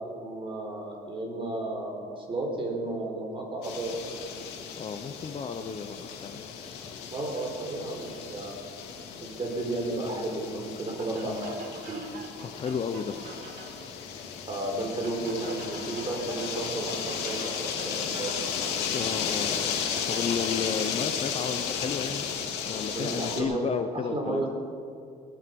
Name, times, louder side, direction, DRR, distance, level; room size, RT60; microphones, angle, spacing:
voice 1, 0.2-4.0 7.1-8.6 9.2-12.0 14.5-18.8 22.9-23.7 23.9-24.5, right 2 dB, 30° right, 1 dB, 4.2 m, -33 dB
sound 1, 3.6-23.4, left 7 dB, 90° left, 2.4 m, -34 dB
voice 2, 4.8-6.5 11.2-11.5 12.4-13.2 18.9-19.8 20.1-22.2 22.7-24.5, left 6 dB, 35° left, 8 dB, 0.8 m, -33 dB
sound 2, 11.0-13.9 15.0-19.2 19.9-20.7, right 5 dB, 65° right, 2.2 m, -46 dB
19.5 x 12.0 x 5.4 m, 2.4 s
cardioid pair, 110°, 17 cm